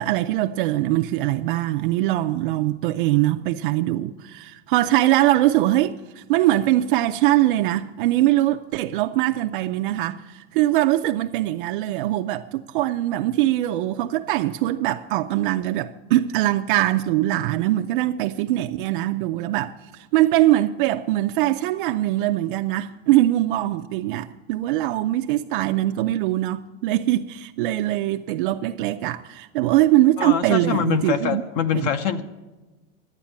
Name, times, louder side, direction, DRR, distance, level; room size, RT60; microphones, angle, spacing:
voice 1, 0.0-31.4 31.7-31.9, right 15 dB, 55° right, 0.5 m, -22 dB
voice 2, 30.2-32.2, left 9 dB, 45° left, 0.7 m, -24 dB
12.0 x 9.0 x 8.6 m
supercardioid pair, 175°, 31 cm